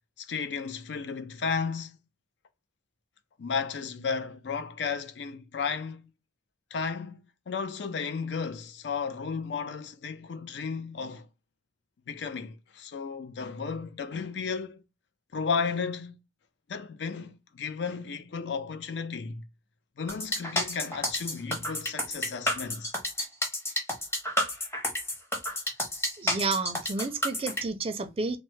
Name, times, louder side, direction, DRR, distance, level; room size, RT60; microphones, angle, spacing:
voice 1, 0.2-2.0 3.4-6.1 6.7-11.3 12.1-14.8 15.3-16.1 16.7-19.4 20.0-22.9, left 5 dB, 65° left, 0.4 m, -34 dB
sound 1, 20.1-27.6, left 1 dB, 15° left, 0.8 m, -30 dB
voice 2, 26.2-28.4, right 4 dB, 30° right, 0.4 m, -31 dB
3.2 x 2.0 x 3.1 m
head